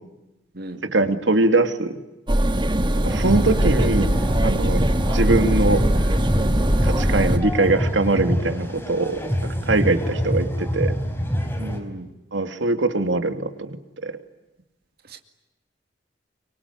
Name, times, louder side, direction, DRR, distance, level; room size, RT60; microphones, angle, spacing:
voice 1, 0.8-2.0 3.0-4.1 4.4-4.8 5.1-5.8 6.8-10.9 12.3-13.8 14.0-14.2, right 2 dB, 80° right, 8 dB, 2.6 m, -22 dB
sound 1, 2.3-7.4, right 1 dB, 25° right, 1.6 m, -21 dB
sound 2, 3.1-11.8, equal, 15° left, 4.7 m, -26 dB
voice 2, 9.7-10.0 11.6-12.1 15.0-15.2, right 1 dB, 55° right, 5 dB, 2.2 m, -36 dB
25.0 x 24.0 x 9.8 m, 0.99 s
head